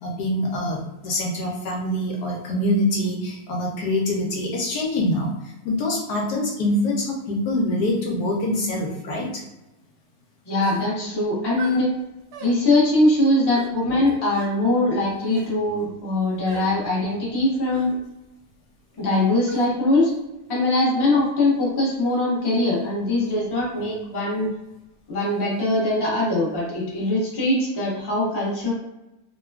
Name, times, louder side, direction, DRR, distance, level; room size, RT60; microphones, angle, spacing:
voice 1, 0.0-9.4, left 1 dB, 75° left, -1 dB, 1.1 m, -25 dB
voice 2, 10.5-11.9 12.4-17.9 19.0-20.1 20.5-24.5 25.1-28.7, left 2 dB, 20° left, -6 dB, 0.6 m, -22 dB
sound 1, 10.6-10.9 11.6-11.8 12.3-12.6 13.5-13.7 14.3-14.5 15.2-15.5 16.5-16.7 17.7-17.9 19.5-19.7, right 4 dB, 75° right, 1.1 m, -38 dB
3.1 x 2.2 x 2.3 m, 0.93 s
omnidirectional pair, 1.8 m